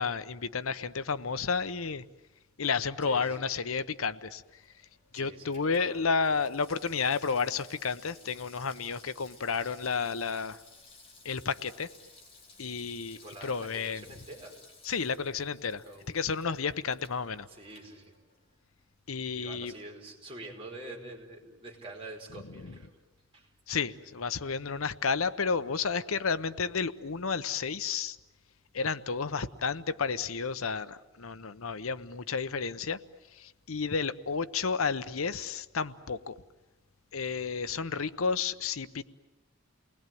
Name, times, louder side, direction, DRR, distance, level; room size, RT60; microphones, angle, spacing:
voice 1, 0.0-2.0 2.6-4.4 5.1-10.6 11.2-11.9 12.6-14.0 14.8-17.5 19.1-19.7 23.7-28.2 28.7-33.0 33.3-36.4 37.1-39.0, left 5 dB, 90° left, 14 dB, 0.9 m, -31 dB
voice 2, 3.0-3.5 5.1-6.2 13.2-14.6 15.8-16.1 17.5-18.1 19.4-22.9 23.3-23.8, right 2 dB, 25° right, -1 dB, 5.2 m, -46 dB
Water tap faucet / Sink (filling or washing), 4.4-18.6 18.9-19.0, left 3 dB, 30° left, 4.9 m, -56 dB
29.0 x 20.5 x 9.3 m, 1.1 s
head